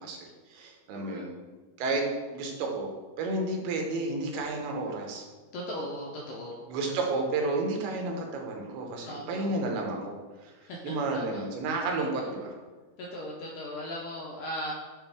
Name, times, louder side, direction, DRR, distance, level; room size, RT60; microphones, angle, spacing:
voice 1, 0.0-1.3 1.8-2.9 3.2-5.2 6.7-10.5 10.8-12.5, right 2 dB, 85° right, 1 dB, 2.8 m, -31 dB
voice 2, 0.9-1.3 5.5-6.6 9.1-9.4 10.6-11.4 12.1-12.3 13.0-14.7, equal, 80° left, -3 dB, 1.9 m, -38 dB
9.2 x 3.2 x 3.5 m, 1.3 s
omnidirectional pair, 4.5 m